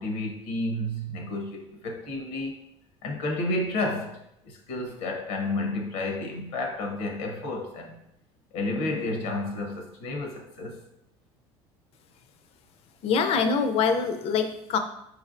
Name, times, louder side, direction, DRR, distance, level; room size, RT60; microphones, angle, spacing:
voice 1, 0.0-2.6 3.0-8.0 8.5-10.8, left 2 dB, 85° left, 2 dB, 0.9 m, -31 dB
voice 2, 13.0-14.8, left 5 dB, 55° left, 7 dB, 0.5 m, -24 dB
5.1 x 3.3 x 2.5 m, 0.79 s
supercardioid pair, 100°, 12 cm